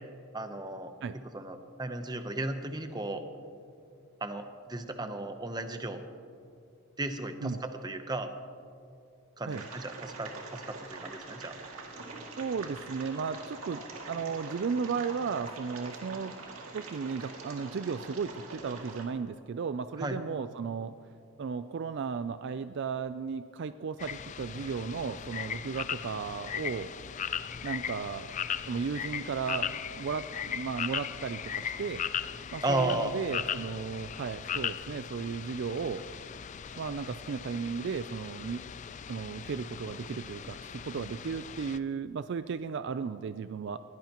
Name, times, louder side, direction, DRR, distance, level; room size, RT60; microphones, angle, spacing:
voice 1, 0.3-0.9 1.3-3.2 4.2-6.0 7.0-8.3 9.4-11.5 20.0-20.2 32.6-33.1, right 2 dB, 20° right, 7 dB, 0.8 m, -34 dB
sound 1, 9.5-19.0, right 3 dB, 65° right, 2.3 m, -44 dB
voice 2, 12.4-16.4 16.7-20.9 21.4-26.9 27.6-28.3 28.7-32.1 32.5-36.0 36.8-38.6 39.1-43.8, right 5 dB, 50° right, 12 dB, 0.3 m, -35 dB
sound 2, 24.0-41.8, left 8 dB, 35° left, 0.3 m, -38 dB
21.0 x 17.0 x 3.0 m, 2.4 s
head